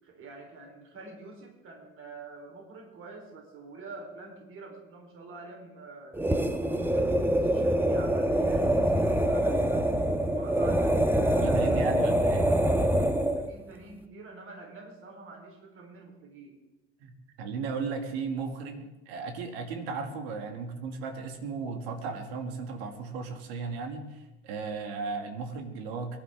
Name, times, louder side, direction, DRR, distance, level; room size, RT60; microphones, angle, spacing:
voice 1, 0.0-6.2 6.6-9.9 10.3-11.9 13.3-16.6, right 3 dB, 40° right, 2 dB, 4.1 m, -46 dB
sound 1, 6.1-13.5, right 1 dB, 5° right, 1.3 m, -25 dB
voice 2, 11.4-12.5 17.0-26.2, right 4 dB, 65° right, 5 dB, 2.4 m, -35 dB
23.5 x 11.5 x 3.7 m, 1.0 s
hypercardioid pair, 70°, 33 cm